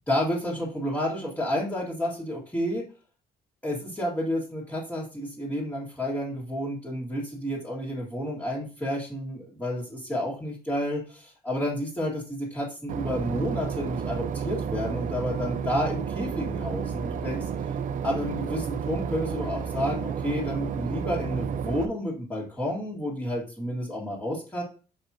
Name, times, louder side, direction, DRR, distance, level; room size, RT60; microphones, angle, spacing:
voice 1, 0.1-2.8 3.6-17.5 18.0-24.6, equal, 5° left, -8 dB, 2.0 m, -30 dB
Boat Water vehicle / Engine, 12.9-21.9, right 7 dB, 50° right, 0.5 m, -31 dB
6.2 x 5.2 x 2.9 m, 0.34 s
cardioid pair, 150°, 17 cm